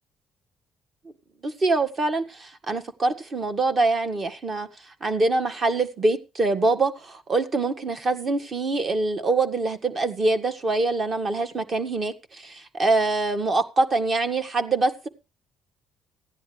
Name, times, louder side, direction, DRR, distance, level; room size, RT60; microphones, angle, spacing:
voice 1, 1.4-4.7 5.0-15.1, right 3 dB, 30° right, 1.8 m, -24 dB
16.0 x 10.5 x 3.4 m
cardioid pair, 140°, 0 cm